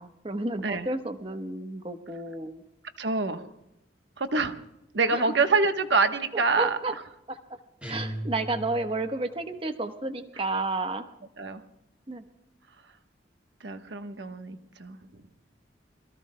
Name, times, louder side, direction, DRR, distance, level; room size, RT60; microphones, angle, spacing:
voice 1, 0.0-2.6 5.1-5.3 6.3-6.9 7.3-7.4 7.9-11.0 12.1-12.2, right 2 dB, 30° right, 7 dB, 1.0 m, -31 dB
voice 2, 3.0-3.5 4.2-4.5 4.9-6.9 11.4-11.6 13.6-15.2, right 4 dB, 70° right, 8 dB, 1.1 m, -26 dB
sound 1, 7.8-9.2, right 1 dB, 5° right, 4.8 m, -37 dB
28.0 x 22.0 x 2.2 m, 0.85 s
head